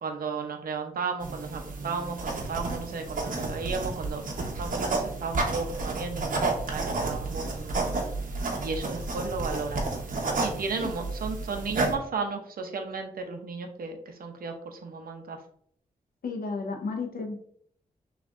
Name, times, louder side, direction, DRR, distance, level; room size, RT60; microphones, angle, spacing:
voice 1, 0.0-7.9 8.6-9.8 10.4-15.4, right 4 dB, 80° right, 4 dB, 0.8 m, -34 dB
sound 1, 1.2-11.9, right 3 dB, 60° right, 1.1 m, -31 dB
voice 2, 16.2-17.4, left 4 dB, 80° left, 3 dB, 1.0 m, -33 dB
6.2 x 3.2 x 2.6 m, 0.62 s
cardioid pair, 85°, 15 cm